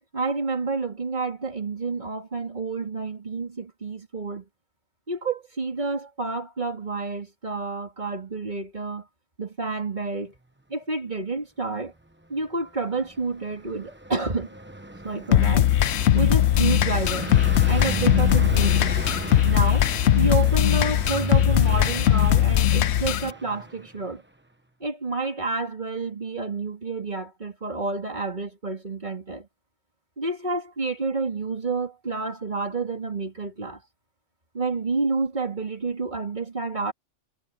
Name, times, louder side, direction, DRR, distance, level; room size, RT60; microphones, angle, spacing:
voice 1, 0.0-4.5 5.1-9.1 9.4-10.3 10.7-11.9 12.3-14.5 15.0-15.7 16.1-17.4 17.7-19.0 19.4-19.9 20.2-24.2 24.8-29.5 30.2-33.8 34.5-36.9, right 3 dB, 40° right, 2.6 m, -29 dB
Car passing by, 13.0-24.0, right 2 dB, 10° right, 1.0 m, -35 dB
sound 1, 15.3-23.3, left 11 dB, 65° left, 0.9 m, -20 dB
omnidirectional pair, 1.3 m